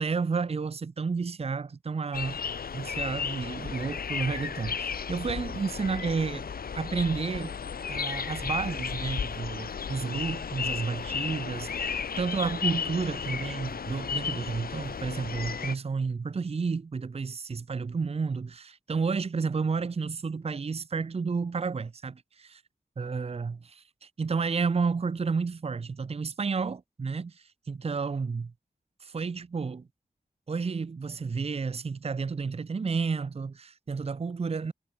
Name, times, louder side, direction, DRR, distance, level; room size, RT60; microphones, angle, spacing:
voice 1, 0.0-2.4 2.7-6.5 6.7-7.5 7.9-22.6 23.0-28.5 29.0-29.9 30.5-34.7, right 5 dB, 45° right, 0.6 m, -31 dB
sound 1, 2.1-15.8, left 6 dB, 85° left, 0.9 m, -34 dB
wide cardioid pair, 95°, 15 cm